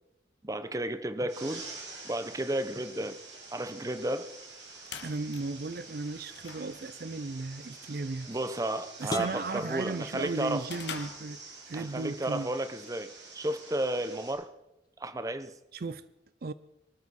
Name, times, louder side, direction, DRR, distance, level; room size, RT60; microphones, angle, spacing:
voice 1, 0.4-1.7 2.0-3.2 3.5-4.3 8.3-10.7 11.7-14.5 15.0-15.6, right 1 dB, 20° right, 0.7 m, -33 dB
sound 1, 1.3-14.3, right 3 dB, 85° right, 5.5 m, -48 dB
sound 2, 4.4-11.9, left 6 dB, 75° left, 1.8 m, -48 dB
voice 2, 5.0-8.3 9.0-11.4 11.7-12.5 15.7-16.0 16.4-16.5, right 3 dB, 55° right, 0.5 m, -35 dB
sound 3, 9.1-11.0, left 2 dB, 20° left, 1.0 m, -40 dB
23.5 x 13.0 x 4.2 m
head